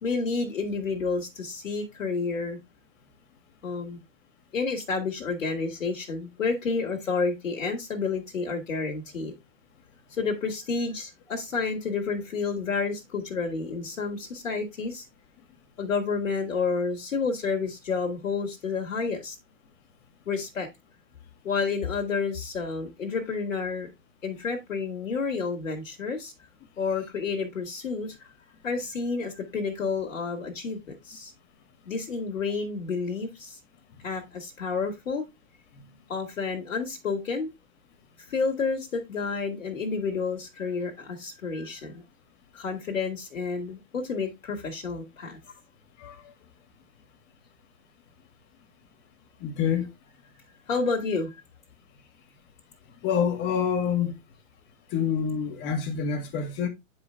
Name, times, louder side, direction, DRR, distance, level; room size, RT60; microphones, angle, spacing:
voice 1, 0.0-2.6 3.6-4.0 4.5-9.3 10.1-15.1 15.8-19.4 20.3-20.7 21.4-23.9 24.2-26.3 26.8-28.3 28.6-31.3 31.9-33.6 34.0-35.3 36.1-37.5 38.3-42.0 42.5-45.4 50.7-51.4, left 4 dB, 70° left, 2.2 m, -30 dB
voice 2, 46.0-46.3 49.4-49.9 53.0-54.1 54.9-56.7, left 7 dB, 30° left, 1.7 m, -27 dB
9.5 x 4.9 x 3.4 m
hypercardioid pair, 130°, 39 cm